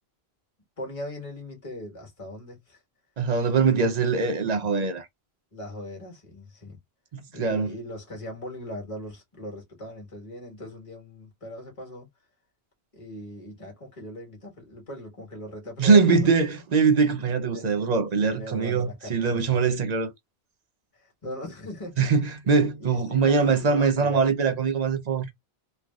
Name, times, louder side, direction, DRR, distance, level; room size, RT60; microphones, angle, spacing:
voice 1, 0.8-2.8 5.5-6.8 7.3-12.1 12.9-16.4 17.3-17.9 18.1-19.6 20.9-22.1 22.5-24.2, equal, 30° left, 1.5 m, -39 dB
voice 2, 3.2-5.1 7.1-7.7 15.8-20.1 22.0-25.3, right 5 dB, 50° right, 0.6 m, -22 dB
3.3 x 2.4 x 2.3 m
omnidirectional pair, 1.1 m